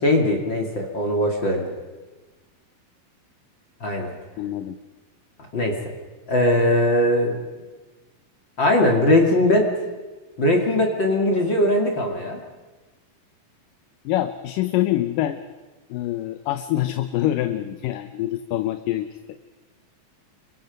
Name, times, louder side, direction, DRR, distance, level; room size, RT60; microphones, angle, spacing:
voice 1, 0.0-1.6 3.8-4.1 5.5-5.9 6.3-7.4 8.6-9.7 10.4-12.4, left 1 dB, 35° left, 1 dB, 2.8 m, -20 dB
voice 2, 4.4-4.8 14.1-15.4 15.9-19.2, left 14 dB, 75° left, 9 dB, 2.4 m, -25 dB
29.5 x 23.5 x 5.4 m, 1.2 s
omnidirectional pair, 4.1 m